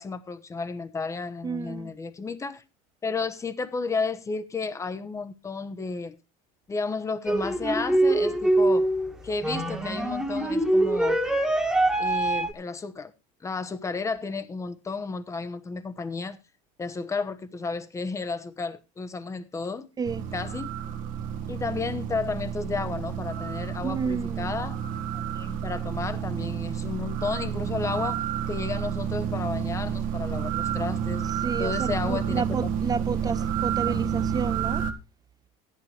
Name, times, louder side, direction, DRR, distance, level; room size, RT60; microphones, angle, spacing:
voice 1, 0.0-2.6 3.0-6.2 6.7-8.9 9.2-11.2 12.0-13.1 13.4-16.4 16.8-19.9 20.3-20.7 21.5-24.8 25.1-31.3 31.6-32.7 33.1-33.3 33.9-34.0, left 4 dB, 20° left, 1.0 m, -32 dB
voice 2, 1.4-1.9 20.0-20.3 23.8-24.5 31.4-34.8, right 5 dB, 25° right, 0.6 m, -31 dB
sound 1, 7.3-12.5, right 1 dB, 5° right, 1.6 m, -24 dB
sound 2, 20.0-34.9, right 8 dB, 55° right, 1.6 m, -30 dB
14.0 x 11.0 x 3.3 m
supercardioid pair, 120°, 17 cm